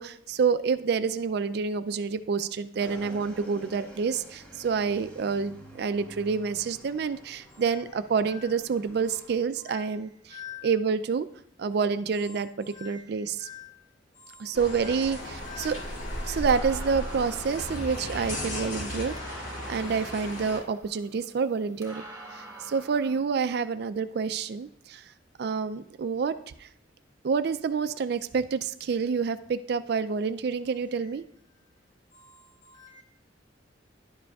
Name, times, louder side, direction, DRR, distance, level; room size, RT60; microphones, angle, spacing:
voice 1, 0.0-10.1 10.6-11.3 11.6-13.5 14.4-15.8 16.2-19.4 19.7-22.0 22.3-25.0 25.4-26.7 27.2-31.2, right 5 dB, 60° right, 12 dB, 0.4 m, -28 dB
Motorcycle / Engine, 2.8-9.4, equal, 10° left, 1.4 m, -49 dB
voice 2, 7.5-7.8 8.3-8.6 9.0-9.3 9.5-10.0 10.3-10.7 12.1-13.8 14.1-15.8 31.0-31.2 32.1-33.0, left 8 dB, 40° left, -3 dB, 2.6 m, -48 dB
sound 1, 14.5-20.6, left 1 dB, 75° left, 2.3 m, -35 dB
sound 2, 15.2-23.2, right 2 dB, 20° right, 2.2 m, -47 dB
11.5 x 7.4 x 2.4 m, 0.69 s
head